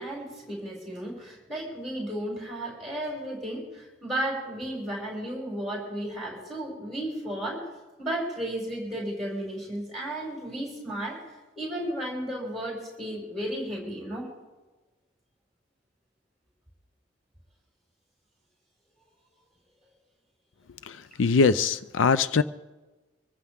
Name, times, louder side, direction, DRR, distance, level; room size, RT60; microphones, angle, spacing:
voice 1, 0.0-7.7 8.0-11.2 11.6-14.3, right 1 dB, ahead, -4 dB, 6.5 m, -34 dB
voice 2, 20.8-22.4, left 4 dB, 80° left, 14 dB, 0.5 m, -22 dB
25.0 x 14.5 x 3.7 m, 1.2 s
head